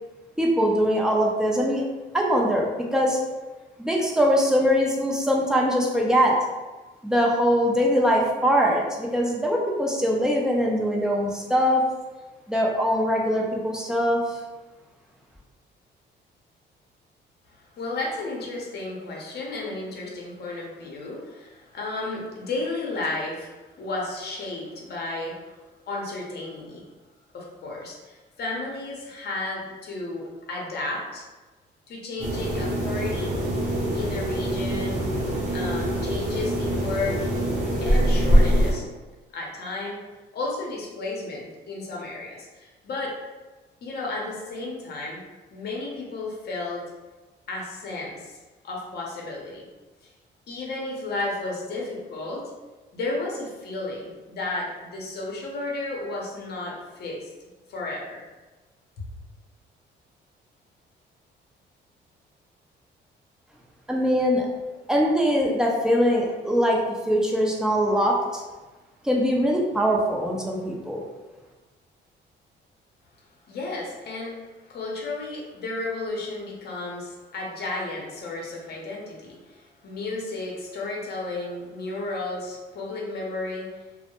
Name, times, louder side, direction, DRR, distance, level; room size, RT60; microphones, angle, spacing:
voice 1, 0.4-1.8 2.1-3.2 3.8-6.4 7.0-11.8 12.5-14.4 63.9-64.5 64.9-68.4 69.0-71.0, equal, 5° right, -2 dB, 0.5 m, -22 dB
voice 2, 17.6-25.6 25.9-26.8 27.3-31.2 31.9-33.4 33.9-35.0 35.5-37.3 37.8-38.8 39.3-40.0 40.3-43.1 43.8-45.2 45.5-46.8 47.5-48.4 48.6-49.7 50.5-52.5 52.9-57.3 57.7-58.2 59.0-59.1 73.5-83.7, left 2 dB, 55° left, -2 dB, 0.7 m, -33 dB
sound 1, 32.2-38.7, equal, 40° right, 0.8 m, -23 dB
2.1 x 2.1 x 2.9 m, 1.2 s
cardioid pair, 90°, 20 cm